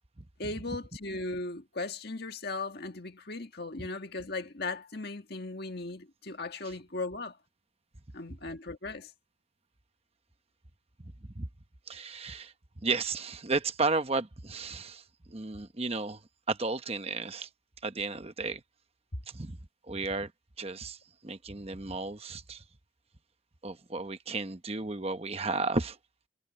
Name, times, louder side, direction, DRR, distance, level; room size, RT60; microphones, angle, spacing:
voice 1, 0.4-7.4 8.1-9.1, left 3 dB, 50° left, 1.8 m, -37 dB
voice 2, 11.9-12.5 12.8-16.2 16.5-17.5 17.8-18.6 19.3-19.6 19.9-20.3 20.6-22.6 23.6-26.0, right 3 dB, 30° right, 1.0 m, -33 dB
head